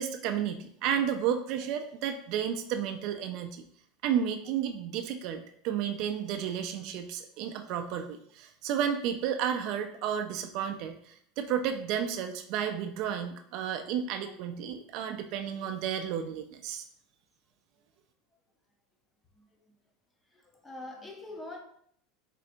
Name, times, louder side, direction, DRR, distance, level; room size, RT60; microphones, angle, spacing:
voice 1, 0.0-3.6 4.0-16.8, right 8 dB, 50° right, 6 dB, 0.3 m, -32 dB
voice 2, 20.3-21.6, left 2 dB, 10° left, 3 dB, 0.5 m, -43 dB
3.7 x 3.2 x 2.5 m, 0.66 s
supercardioid pair, 155°, 0 cm